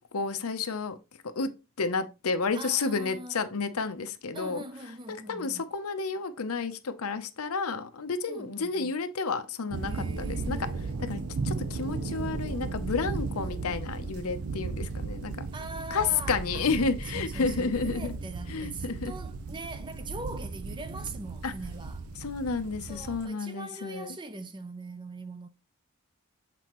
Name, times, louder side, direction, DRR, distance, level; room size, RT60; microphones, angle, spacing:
voice 1, 0.1-1.0 1.4-1.5 1.8-4.6 5.3-10.6 11.0-15.5 15.9-18.1 18.5-19.1 21.4-21.5 22.2-24.2, left 4 dB, 80° left, 0.7 m, -31 dB
voice 2, 2.5-3.5 4.3-5.6 8.3-9.0 9.8-11.6 13.3-13.6 15.5-16.7 17.1-22.0 22.9-25.5, right 2 dB, 20° right, 0.5 m, -42 dB
sound 1, 9.7-23.3, right 4 dB, 85° right, 0.6 m, -35 dB
7.6 x 4.1 x 3.0 m
head